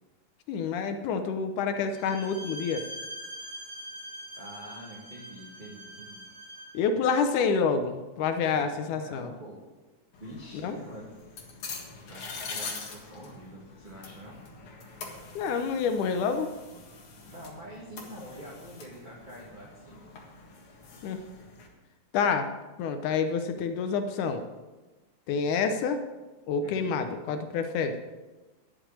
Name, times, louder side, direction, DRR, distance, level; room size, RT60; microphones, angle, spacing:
voice 1, 0.5-2.9 6.7-9.3 10.5-10.8 15.4-16.5 21.0-21.2 22.1-22.5 22.8-24.4 25.3-26.0 26.5-28.0, left 5 dB, 80° left, 7 dB, 2.3 m, -28 dB
Bowed string instrument, 1.9-6.8, right 1 dB, 65° right, 5.0 m, -43 dB
voice 2, 4.4-6.3 8.4-9.6 10.2-11.2 12.1-14.4 17.3-20.1 26.6-26.9, equal, 20° right, -4 dB, 1.7 m, -46 dB
sound 1, 10.1-21.7, left 4 dB, 50° left, 2.4 m, -44 dB
11.0 x 6.9 x 8.9 m, 1.2 s
omnidirectional pair, 3.5 m